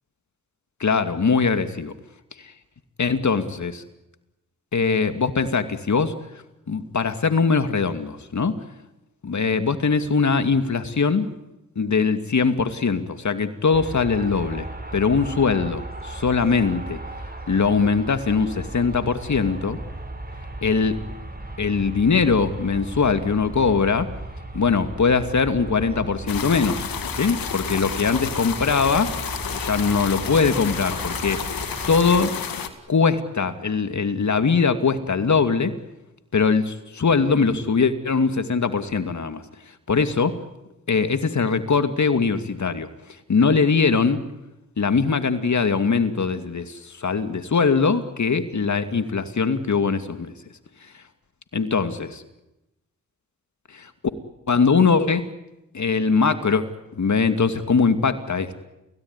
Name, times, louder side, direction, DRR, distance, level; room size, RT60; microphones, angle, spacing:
voice 1, 0.8-1.9 2.4-2.5 3.0-3.8 4.7-6.1 6.7-8.5 9.2-11.3 11.8-14.7 14.9-17.0 17.5-19.8 20.6-21.0 21.6-24.1 24.5-29.1 29.5-31.6 31.9-32.3 32.9-35.7 36.3-39.4 39.9-40.4 40.9-42.9 43.3-44.2 44.8-50.3 51.5-52.2 53.7-53.9 54.5-55.2 55.7-56.6 56.9-58.6, left 5 dB, 55° left, 9 dB, 2.5 m, -21 dB
sound 1, 13.7-32.3, right 2 dB, 25° right, 7.0 m, -36 dB
sound 2, 26.3-32.7, left 7 dB, 80° left, 2.3 m, -31 dB
28.5 x 17.5 x 9.9 m, 0.95 s
supercardioid pair, 40°, 34 cm